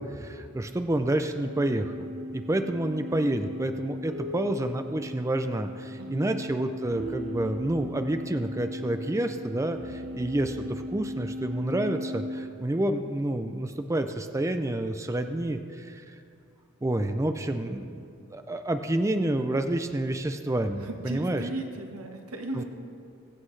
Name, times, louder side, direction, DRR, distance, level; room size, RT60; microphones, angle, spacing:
voice 1, 0.0-1.9 2.3-16.2 16.8-21.4 22.5-22.6, right 1 dB, 15° right, 7 dB, 0.4 m, -29 dB
sound 1, 1.3-12.5, left 1 dB, 55° right, 0.8 m, -37 dB
voice 2, 5.9-6.3 20.8-22.6, right 2 dB, 85° right, 3 dB, 1.3 m, -36 dB
22.0 x 7.6 x 3.2 m, 2.4 s
head